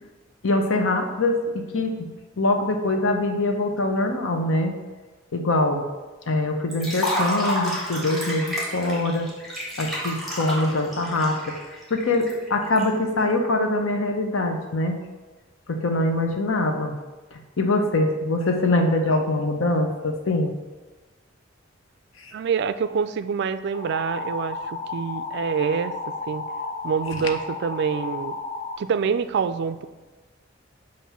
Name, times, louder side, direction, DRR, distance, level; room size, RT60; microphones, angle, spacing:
voice 1, 0.4-2.1 2.4-4.8 5.3-5.8 6.3-9.3 9.8-11.6 11.9-15.0 15.7-16.9 17.3-20.5 22.2-22.3, left 2 dB, 85° left, 4 dB, 0.8 m, -23 dB
Liquid, 6.7-12.8, equal, ahead, 1.6 m, -30 dB
voice 2, 22.3-25.9 26.3-26.5 26.8-28.4 28.8-29.9, right 6 dB, 60° right, 13 dB, 0.3 m, -26 dB
sound 1, 23.7-28.8, left 3 dB, 35° left, 0.4 m, -33 dB
7.2 x 2.6 x 5.7 m, 1.3 s
head